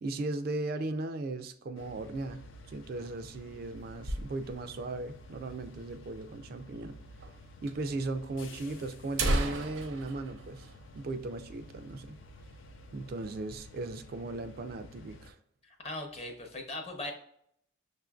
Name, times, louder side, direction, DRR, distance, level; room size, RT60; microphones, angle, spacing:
voice 1, 0.0-7.0 7.6-12.2 12.9-15.4, right 2 dB, 50° right, 8 dB, 0.3 m, -37 dB
sound 1, 1.8-15.3, equal, 70° left, 0.5 m, -51 dB
sound 2, 3.0-4.8 5.1-5.2 5.4-5.5 6.2-6.3 7.2-7.3 7.7-7.8 8.5-8.6 9.0-11.6 11.9-12.0 12.4-12.7 13.1-13.7, right 1 dB, 80° right, 0.6 m, -35 dB
voice 2, 15.6-17.1, left 2 dB, 30° left, 3 dB, 0.7 m, -39 dB
6.2 x 2.5 x 2.3 m, 0.70 s
head